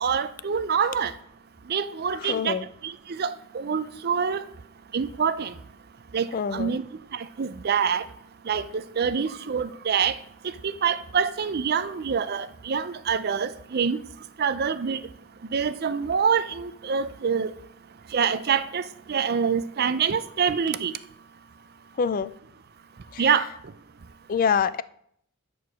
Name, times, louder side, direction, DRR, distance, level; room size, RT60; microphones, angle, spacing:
voice 1, 0.0-1.1 1.7-2.6 2.8-4.4 4.9-5.5 6.1-6.8 7.1-8.1 8.5-10.2 10.6-14.0 14.4-15.0 15.5-17.5 18.1-18.8 19.1-20.9 23.2-23.5, right 6 dB, 45° right, 13 dB, 0.4 m, -26 dB
voice 2, 2.2-2.7 6.3-6.8 22.0-22.3 23.1-23.2 24.3-24.8, left 6 dB, 40° left, 16 dB, 0.3 m, -25 dB
10.0 x 4.6 x 6.3 m, 0.70 s
head